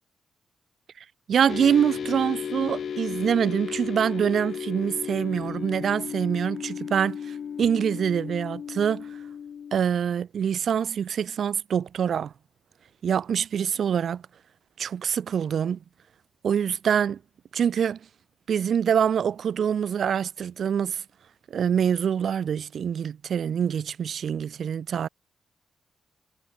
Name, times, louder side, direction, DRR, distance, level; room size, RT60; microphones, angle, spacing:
voice 1, 1.3-7.2 7.6-9.1 9.7-12.3 13.0-14.2 14.8-15.8 16.4-17.2 17.5-18.0 18.5-21.0 21.5-25.1, right 8 dB, 70° right, 0.7 m, -25 dB
sound 1, 1.5-9.7, left 7 dB, 65° left, 5.1 m, -34 dB
supercardioid pair, 45°, 0 cm